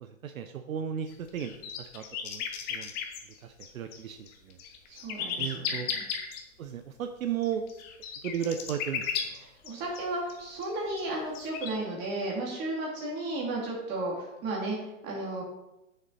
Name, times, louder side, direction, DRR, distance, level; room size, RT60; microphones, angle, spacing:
voice 1, 0.0-1.5 1.8-2.4 2.7-2.9 3.4-4.6 5.4-5.9 6.6-7.6 8.2-9.0, right 8 dB, 70° right, 7 dB, 0.9 m, -35 dB
sound 1, 1.1-4.0 4.3-6.4 7.4-10.0 10.3-10.4 10.6-11.7, left 7 dB, 20° left, 0.9 m, -35 dB
voice 2, 4.9-6.0 9.6-14.8 15.0-15.4, right 2 dB, 25° right, -2 dB, 2.8 m, -34 dB
8.9 x 6.8 x 4.2 m, 0.92 s
hypercardioid pair, 145°, 42 cm